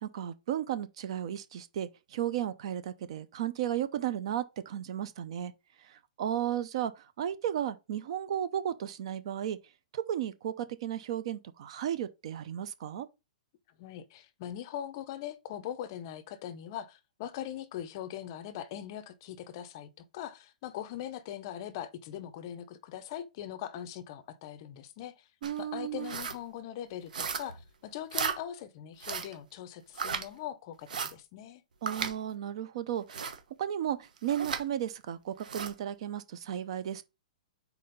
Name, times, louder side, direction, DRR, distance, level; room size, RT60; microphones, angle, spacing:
voice 1, 0.0-5.5 5.8-9.6 9.9-13.1 25.4-26.1 31.8-33.3 33.6-37.0, right 10 dB, 45° right, 0.6 m, -34 dB
voice 2, 13.8-25.3 25.6-31.6, left 11 dB, 30° left, 0.5 m, -41 dB
sound 1, 25.4-25.6 26.0-26.4 27.1-27.6 28.1-28.4 29.0-29.3 29.9-30.2 30.9-31.1 31.9-32.1 33.1-33.4 34.3-34.6 35.4-35.7, right 6 dB, 75° right, 1.1 m, -35 dB
4.2 x 4.2 x 5.2 m
hypercardioid pair, 170°, 4 cm